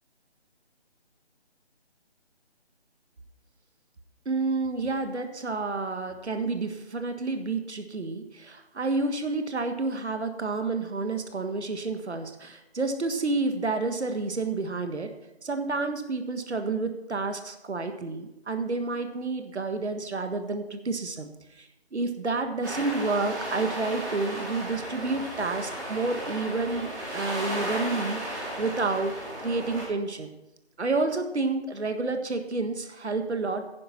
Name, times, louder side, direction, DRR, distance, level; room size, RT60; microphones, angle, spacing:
voice 1, 4.2-15.1 15.4-30.3 30.8-33.7, right 3 dB, 85° right, 7 dB, 1.6 m, -30 dB
sound 1, 22.6-29.8, right 1 dB, 15° right, 2.5 m, -35 dB
10.5 x 10.5 x 4.3 m, 0.93 s
figure-of-eight pair, 175°, 33 cm